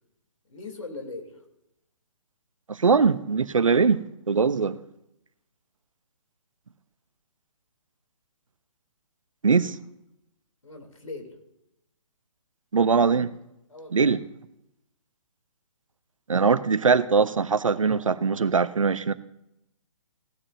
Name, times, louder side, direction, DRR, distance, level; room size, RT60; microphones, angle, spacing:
voice 1, 0.5-1.4 4.3-4.6 10.6-11.3 13.7-14.1, left 3 dB, 75° left, 3 dB, 3.3 m, -40 dB
voice 2, 2.8-4.0 4.3-4.8 9.4-9.7 12.7-13.3 13.9-14.2 16.3-19.1, right 5 dB, 75° right, 15 dB, 0.8 m, -21 dB
18.0 x 13.5 x 2.7 m, 0.85 s
figure-of-eight pair, 135°, 17 cm